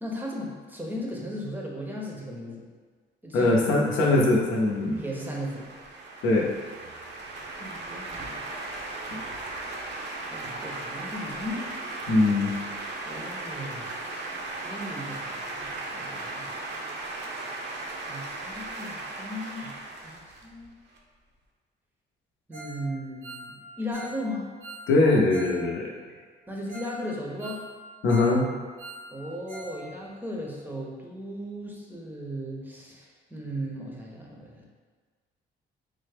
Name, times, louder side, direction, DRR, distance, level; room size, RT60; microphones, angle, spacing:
voice 1, 0.0-2.6 3.2-3.9 5.0-5.6 7.6-8.5 10.3-11.6 13.1-13.9 14.6-16.5 18.1-19.7 20.0-20.7 22.5-24.4 26.5-27.6 29.1-34.7, equal, 10° right, -2 dB, 0.6 m, -36 dB
voice 2, 3.3-5.0 6.2-6.5 12.1-12.5 24.9-25.9 28.0-28.5, left 2 dB, 80° left, -2 dB, 0.6 m, -21 dB
sound 1, 4.3-21.0, right 2 dB, 60° right, 0.5 m, -37 dB
Ringtone, 22.5-22.8 23.1-25.6 25.9-26.0 26.4-26.5 26.7-27.0 27.2-28.4 28.6-29.8 30.0-30.1 30.6-30.7, right 2 dB, 90° right, 1.3 m, -43 dB
3.3 x 2.0 x 3.3 m, 1.5 s
cardioid pair, 90°, 20 cm